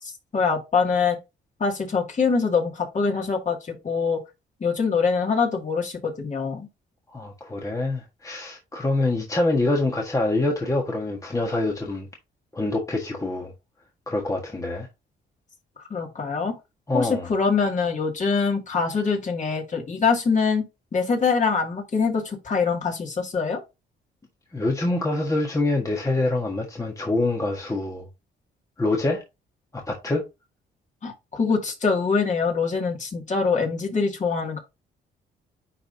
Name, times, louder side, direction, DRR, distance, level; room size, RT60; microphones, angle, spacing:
voice 1, 0.0-1.2 1.6-4.2 4.6-6.7 15.9-16.6 16.9-20.7 20.9-23.6 31.0-34.6, left 5 dB, 40° left, 2.3 m, -24 dB
voice 2, 7.1-12.1 12.5-13.5 14.1-14.9 16.9-17.3 24.5-28.1 28.8-29.2 29.7-30.2, left 2 dB, 15° left, 1.4 m, -25 dB
10.0 x 3.6 x 2.7 m
cardioid pair, 90°, 20 cm